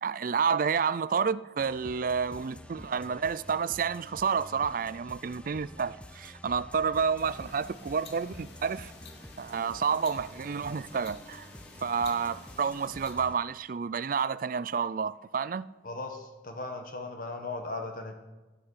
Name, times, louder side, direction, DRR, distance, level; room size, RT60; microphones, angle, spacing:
voice 1, 0.0-8.9 9.4-11.5 11.8-15.7, right 6 dB, 50° right, 0.4 m, -30 dB
sound 1, 1.6-13.4, left 1 dB, 5° left, 0.7 m, -49 dB
sound 2, 7.2-13.1, left 4 dB, 70° left, 2.5 m, -52 dB
voice 2, 15.8-18.1, left 2 dB, 50° left, 1.5 m, -37 dB
16.5 x 10.0 x 6.4 m
head